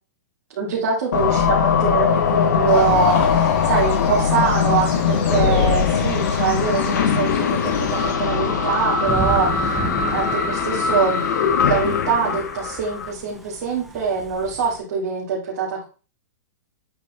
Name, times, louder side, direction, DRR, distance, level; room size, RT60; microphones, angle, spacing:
voice 1, 0.5-9.7 10.1-11.2 11.6-15.8, right 5 dB, 50° right, -5 dB, 2.1 m, -23 dB
sound 1, 1.1-13.1, left 6 dB, 70° left, 1.2 m, -21 dB
sound 2, 2.7-8.1, left 4 dB, 40° left, 2.1 m, -30 dB
Thunder / Rain, 9.1-14.8, right 2 dB, ahead, 0.5 m, -33 dB
8.2 x 3.3 x 4.1 m, 0.35 s
hypercardioid pair, 165°, 10 cm